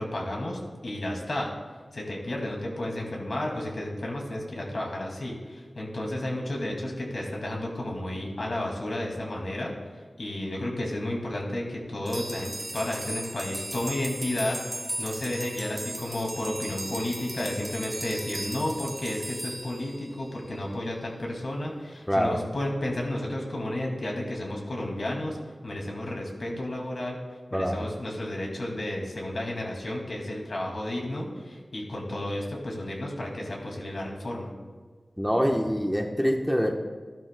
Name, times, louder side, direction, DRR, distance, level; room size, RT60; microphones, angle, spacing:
voice 1, 0.0-1.5 1.9-9.7 10.2-25.4 25.6-27.2 27.5-34.6, left 1 dB, 70° left, -1 dB, 2.3 m, -32 dB
sound 1, 12.1-20.6, right 1 dB, 30° right, 0.8 m, -37 dB
voice 2, 22.1-22.4 27.5-27.8 35.2-36.7, equal, 5° left, 2 dB, 1.0 m, -25 dB
13.5 x 11.5 x 2.2 m, 1.5 s
wide cardioid pair, 55°, 0 cm